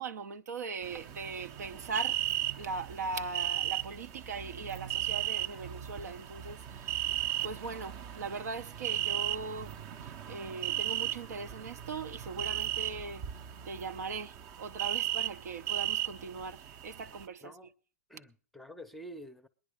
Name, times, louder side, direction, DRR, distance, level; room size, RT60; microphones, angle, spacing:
voice 1, 0.0-2.2 2.6-6.9 7.4-9.8 10.0-13.2 13.6-17.6, right 4 dB, 80° right, 0.8 m, -40 dB
sound 1, 0.8-17.2, right 13 dB, 35° right, 0.7 m, -36 dB
voice 2, 17.4-17.7 18.1-19.5, equal, ahead, 0.7 m, -48 dB
19.5 x 10.0 x 5.0 m
hypercardioid pair, 135°, 9 cm